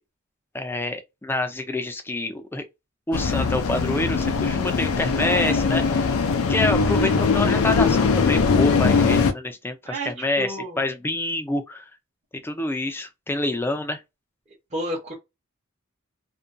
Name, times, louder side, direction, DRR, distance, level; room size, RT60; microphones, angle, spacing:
voice 1, 0.5-2.6 3.1-6.2 6.5-11.9 12.4-14.0, left 2 dB, 10° left, 0.3 m, -27 dB
sound 1, 3.1-9.3, left 5 dB, 85° left, 0.4 m, -21 dB
voice 2, 10.4-10.8 14.7-15.1, right 1 dB, 35° right, 0.8 m, -30 dB
2.5 x 2.2 x 2.5 m
head